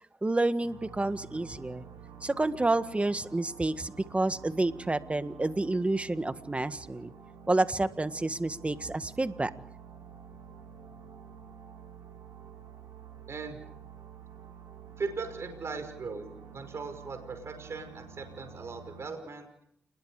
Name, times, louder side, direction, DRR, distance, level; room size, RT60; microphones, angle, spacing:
voice 1, 0.2-1.8 2.2-7.1 7.5-9.5, right 2 dB, 25° right, 11 dB, 1.7 m, -29 dB
sound 1, 0.6-19.1, right 7 dB, 85° right, 7.1 m, -49 dB
voice 2, 15.0-16.2 16.5-19.5, right 4 dB, 60° right, 7 dB, 5.5 m, -38 dB
29.5 x 21.0 x 5.0 m, 0.75 s
cardioid pair, 60°, 5 cm